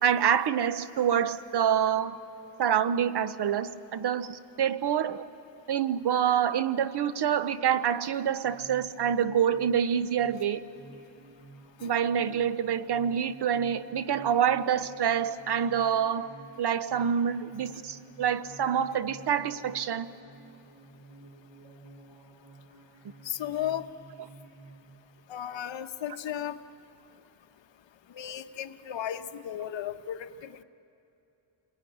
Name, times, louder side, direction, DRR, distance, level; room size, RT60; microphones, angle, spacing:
voice 1, 0.0-2.2 2.6-5.2 5.7-10.6 11.8-20.1, right 8 dB, 60° right, 13 dB, 0.9 m, -27 dB
sound 1, 8.4-24.8, right 3 dB, 90° right, 6.8 m, -52 dB
voice 2, 23.2-23.9 25.3-26.6 28.1-30.6, left 10 dB, 75° left, 9 dB, 1.1 m, -35 dB
27.5 x 20.5 x 9.9 m, 2.9 s
wide cardioid pair, 160°, 45 cm